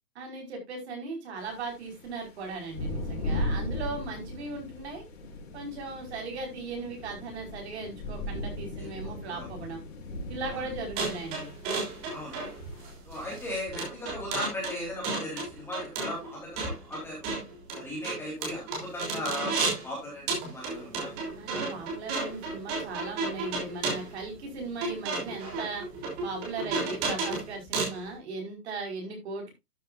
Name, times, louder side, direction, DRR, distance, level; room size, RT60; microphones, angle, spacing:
voice 1, 0.1-5.0 5.5-9.8 10.3-11.5 21.4-25.8 26.2-29.5, right 3 dB, 45° right, 2 dB, 5.1 m, -38 dB
sound 1, 1.4-13.0, left 1 dB, 40° left, 6.1 m, -38 dB
sound 2, 11.0-19.9 20.3-28.0, right 3 dB, 20° right, 3.5 m, -33 dB
voice 2, 13.1-17.4 17.7-21.1 26.6-26.9, left 1 dB, 5° left, -4 dB, 3.8 m, -37 dB
13.0 x 7.8 x 2.6 m, 0.21 s
hypercardioid pair, 165°, 47 cm